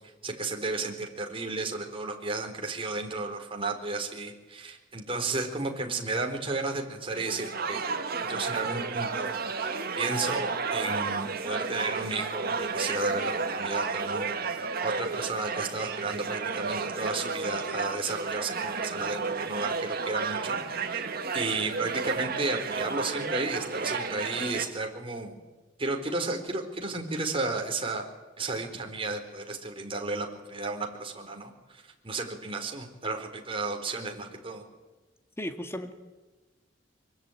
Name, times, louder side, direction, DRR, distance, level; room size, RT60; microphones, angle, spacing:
voice 1, 0.2-7.9 8.2-14.3 14.6-21.1 21.3-25.3 25.8-28.0 28.4-34.6, right 3 dB, 30° right, 3 dB, 4.2 m, -33 dB
sound 1, 7.1-24.7, right 4 dB, 50° right, 2.1 m, -32 dB
voice 2, 35.4-35.9, equal, 15° left, 6 dB, 2.2 m, -35 dB
24.0 x 24.0 x 9.2 m, 1.2 s
head